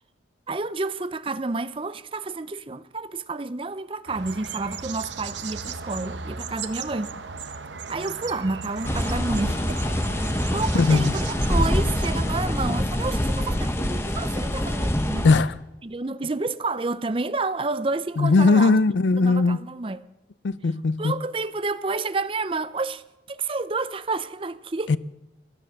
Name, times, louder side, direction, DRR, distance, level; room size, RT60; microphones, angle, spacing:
voice 1, 0.5-7.1 7.9-9.8 10.5-15.3 15.8-18.8 19.2-20.0 21.0-24.9, right 3 dB, 30° right, 0.5 m, -30 dB
sound 1, 4.1-12.2, right 4 dB, 85° right, 1.0 m, -36 dB
sound 2, 8.8-15.4, left 1 dB, 15° left, 1.1 m, -25 dB
voice 2, 10.7-11.1 15.2-15.5 18.2-19.6 20.4-21.2 24.9-25.0, left 3 dB, 85° left, 0.5 m, -19 dB
16.5 x 12.5 x 6.5 m
head